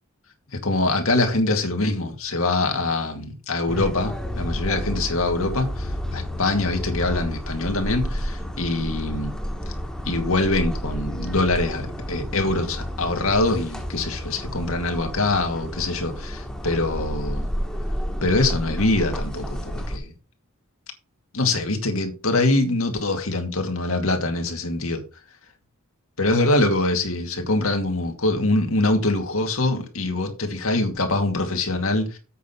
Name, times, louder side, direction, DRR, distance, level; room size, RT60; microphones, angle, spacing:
voice 1, 0.5-9.3 10.1-17.5 18.2-20.1 21.3-25.0 26.2-32.2, left 2 dB, 80° left, 2.3 m, -24 dB
sound 1, 3.7-20.0, equal, 5° left, 1.4 m, -31 dB
8.2 x 6.3 x 5.6 m
head